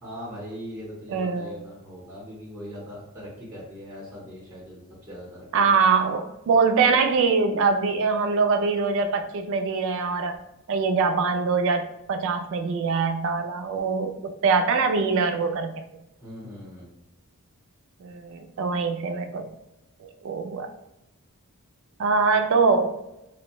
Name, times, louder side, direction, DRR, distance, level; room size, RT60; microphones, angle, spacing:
voice 1, 0.0-5.7 16.2-16.9, equal, 15° right, -6 dB, 0.7 m, -40 dB
voice 2, 1.1-1.6 5.5-10.4 10.7-15.8 18.0-19.5 20.0-20.7 22.0-23.0, right 4 dB, 60° right, 7 dB, 0.3 m, -23 dB
2.6 x 2.1 x 2.9 m, 0.89 s
head